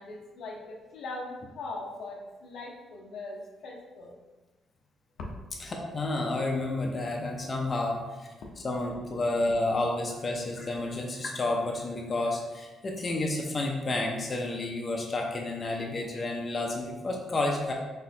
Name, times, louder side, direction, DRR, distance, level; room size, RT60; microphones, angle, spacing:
voice 1, 0.0-4.1, left 2 dB, 75° left, -1 dB, 0.7 m, -40 dB
voice 2, 5.6-8.3 8.6-17.7, left 2 dB, 35° left, 0 dB, 0.6 m, -30 dB
4.2 x 3.7 x 2.8 m, 1.2 s
cardioid pair, 90°, 0 cm